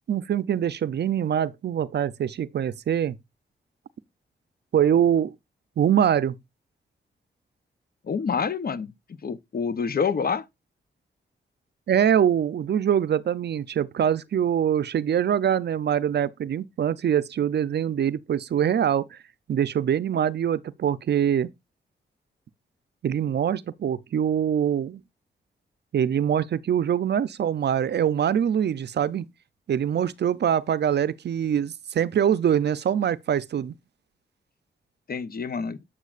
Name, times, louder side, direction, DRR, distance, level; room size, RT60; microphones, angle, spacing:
voice 1, 0.1-3.2 4.7-5.3 5.8-6.4 11.9-19.1 19.5-21.5 23.0-25.0 25.9-29.3 29.7-33.7, right 9 dB, 60° right, 0.5 m, -24 dB
voice 2, 8.0-8.9 9.2-10.4 35.1-35.8, left 6 dB, 50° left, 0.8 m, -27 dB
8.2 x 7.4 x 2.5 m
cardioid pair, 65°, 20 cm